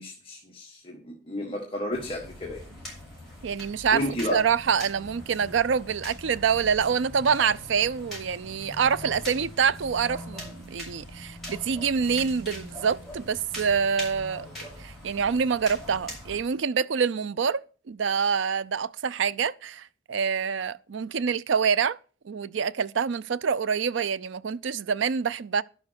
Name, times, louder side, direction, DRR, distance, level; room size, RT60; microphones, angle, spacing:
voice 1, 0.0-2.6 3.9-4.4, left 1 dB, 25° left, 1.6 m, -32 dB
sound 1, 1.9-16.4, left 1 dB, ahead, 7.4 m, -42 dB
voice 2, 3.4-4.0 4.3-14.5 14.8-22.0 22.2-25.6, right 6 dB, 70° right, 0.4 m, -26 dB
11.5 x 7.1 x 6.5 m
head